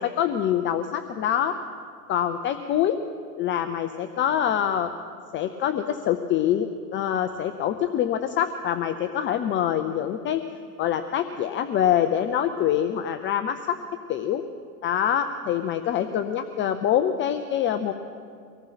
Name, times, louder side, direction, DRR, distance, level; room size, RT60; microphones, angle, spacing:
voice 1, 0.0-1.6 2.1-3.0 3.4-4.9 5.3-10.4 10.8-13.8 14.1-14.4 14.8-17.9, left 10 dB, 25° left, 9 dB, 0.6 m, -25 dB
24.5 x 18.5 x 5.8 m, 2.2 s
hypercardioid pair, 125°, 49 cm